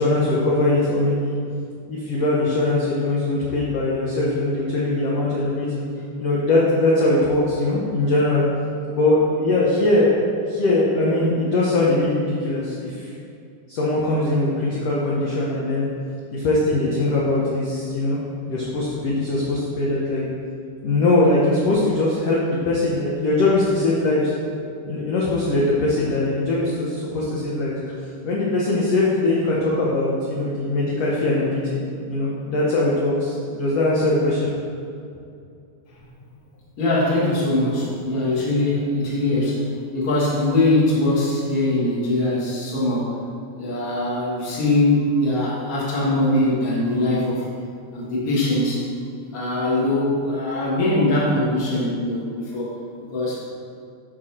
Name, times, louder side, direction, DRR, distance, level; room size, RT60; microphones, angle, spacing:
voice 1, 0.0-1.4 1.9-5.8 6.2-8.4 8.9-10.1 10.5-13.1 13.7-15.9 16.3-18.2 18.5-20.2 20.8-24.3 24.9-27.7 28.2-34.5, left 2 dB, 60° left, -6 dB, 1.8 m, -21 dB
voice 2, 36.8-39.6 39.9-43.2 43.6-47.5 47.9-48.8 49.3-52.7 53.1-53.5, left 1 dB, 35° left, -6 dB, 1.7 m, -21 dB
12.5 x 4.7 x 4.4 m, 2.5 s
omnidirectional pair, 4.1 m